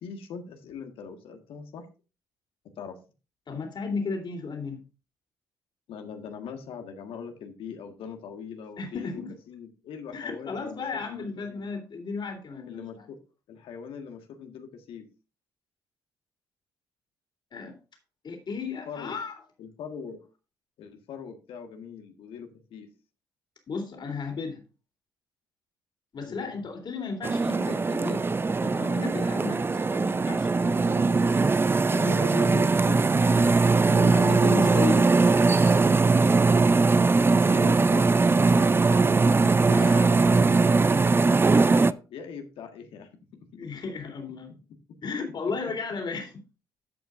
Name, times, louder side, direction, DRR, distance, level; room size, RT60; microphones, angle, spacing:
voice 1, 0.0-1.9 2.6-3.0 5.9-11.6 12.7-13.2 13.5-15.1 18.9-19.2 19.6-20.2 20.8-22.9 26.3-26.6 32.0-33.0 33.7-34.2 37.4-39.2 40.1-40.8 41.5-43.7, left 6 dB, 65° left, 1.7 m, -41 dB
voice 2, 3.5-4.9 8.8-9.3 10.1-13.1 17.5-17.8 18.2-19.4 23.7-24.6 26.1-28.3 28.6-32.5 33.9-35.1 39.6-40.3 43.5-44.5 45.0-46.4, left 4 dB, 50° left, 3.5 m, -34 dB
sound 1, 27.2-41.9, right 3 dB, 25° right, 0.5 m, -21 dB
12.0 x 8.1 x 2.6 m
hypercardioid pair, 45°, 10 cm